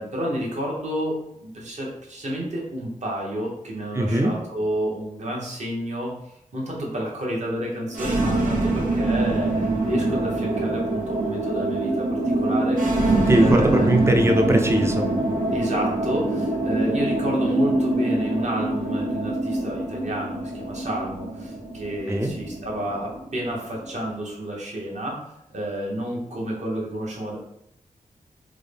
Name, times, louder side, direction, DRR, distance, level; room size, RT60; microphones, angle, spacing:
voice 1, 0.0-6.1 6.5-12.1 12.4-12.8 13.1-13.9 15.5-25.2 25.5-27.4, right 1 dB, 55° right, -3 dB, 1.0 m, -30 dB
voice 2, 3.9-4.3 13.3-15.1 22.1-22.3, right 1 dB, 20° right, 4 dB, 0.4 m, -20 dB
sound 1, 7.9-23.9, right 2 dB, 75° right, 0.8 m, -24 dB
3.7 x 2.1 x 3.4 m, 0.79 s
wide cardioid pair, 105°, 14 cm